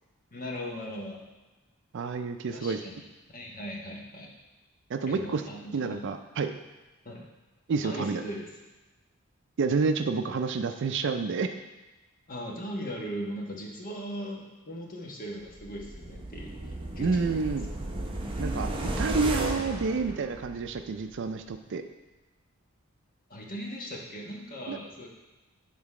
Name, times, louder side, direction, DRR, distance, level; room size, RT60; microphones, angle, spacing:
voice 1, 0.3-1.2 2.5-4.3 5.1-6.0 7.0-7.3 7.8-8.5 12.3-17.3 23.3-25.1, equal, 40° left, -2 dB, 1.2 m, -39 dB
voice 2, 1.9-2.8 4.9-5.4 5.7-6.5 7.7-8.2 9.6-11.5 17.0-17.7 18.4-21.8 24.7-24.8, right 4 dB, 55° right, 8 dB, 0.4 m, -29 dB
sound 1, 15.6-20.8 21.2-21.3, right 1 dB, 25° right, 0.7 m, -34 dB
7.6 x 4.0 x 4.8 m, 1.1 s
head